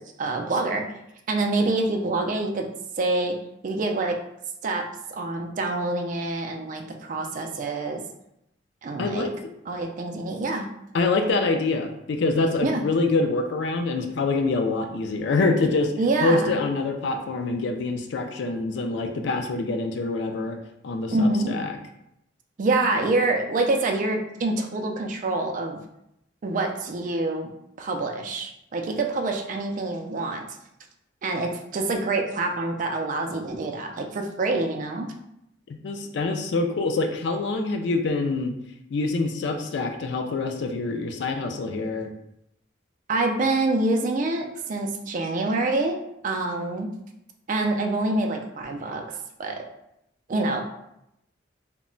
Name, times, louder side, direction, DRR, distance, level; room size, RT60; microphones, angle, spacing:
voice 1, 0.2-0.8 1.3-2.7 3.0-3.3 3.6-4.2 4.6-4.8 5.1-8.0 8.8-9.3 9.7-10.7 12.6-12.8 16.0-16.6 21.1-21.6 22.6-25.8 26.4-27.5 27.8-30.5 31.2-35.1 43.1-46.0 46.2-46.9 47.5-49.0 49.4-49.6 50.3-50.6, right 2 dB, 40° right, 3 dB, 0.3 m, -26 dB
voice 2, 9.0-9.3 10.9-15.9 16.2-20.6 20.8-21.8 35.7-38.5 38.9-42.1, left 3 dB, 65° left, 5 dB, 0.3 m, -25 dB
2.1 x 2.0 x 3.7 m, 0.80 s
head